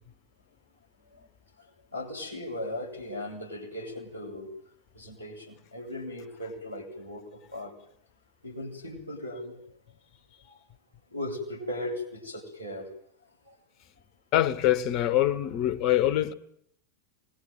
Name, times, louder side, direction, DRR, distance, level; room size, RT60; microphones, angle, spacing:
voice 1, 1.9-4.5 4.9-7.7 8.4-9.6 10.5-10.6 11.1-12.9 13.5-13.6, left 1 dB, 90° right, 7.8 m, -37 dB
voice 2, 14.3-16.3, left 13 dB, 40° left, 1.6 m, -24 dB
26.0 x 21.5 x 9.4 m
figure-of-eight pair, 90°, 0 cm